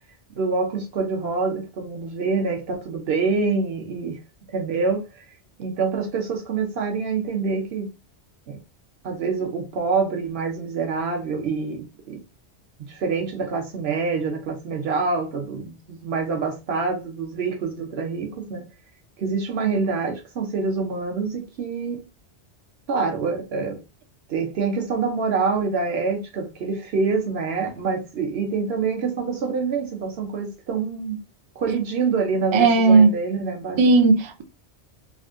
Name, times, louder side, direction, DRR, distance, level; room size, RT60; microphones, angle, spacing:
voice 1, 0.3-4.2 4.5-5.0 5.6-7.9 8.5-8.6 9.0-12.2 12.8-18.7 19.2-22.0 22.9-23.8 24.3-31.2 31.6-33.8, right 4 dB, 65° right, 1.0 m, -26 dB
voice 2, 32.5-33.1 33.8-34.4, right 4 dB, 50° right, 0.3 m, -15 dB
3.4 x 2.2 x 2.4 m
omnidirectional pair, 1.2 m